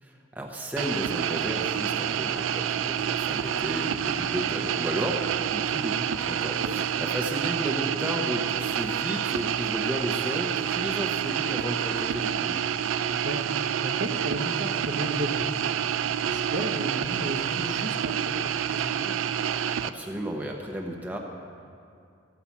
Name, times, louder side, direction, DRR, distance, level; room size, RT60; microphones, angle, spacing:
voice 1, 0.0-5.2 5.5-12.6 19.8-21.2, equal, 10° right, 0 dB, 0.8 m, -33 dB
sound 1, 0.8-19.9, right 9 dB, 80° right, 0.3 m, -28 dB
voice 2, 6.6-7.0 13.1-13.5 13.8-15.8 16.2-19.3, right 1 dB, 65° right, 4 dB, 0.8 m, -34 dB
13.0 x 5.7 x 7.2 m, 2.4 s
head